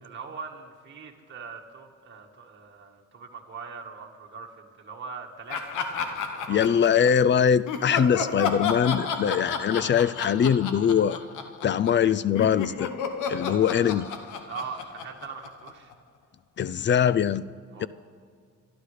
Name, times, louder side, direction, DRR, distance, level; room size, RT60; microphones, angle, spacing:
voice 1, 0.0-6.8 14.5-15.9 17.7-17.9, right 5 dB, 40° right, -1 dB, 1.6 m, -41 dB
Laughter, 5.5-7.2 7.7-12.1 12.3-15.9, left 5 dB, 80° left, 1.2 m, -32 dB
voice 2, 6.5-11.2 11.6-12.9 13.3-14.1 16.6-17.4 17.8-17.9, left 8 dB, 40° left, 18 dB, 0.4 m, -22 dB
27.5 x 11.5 x 3.3 m, 2.1 s
cardioid pair, 90°, 30 cm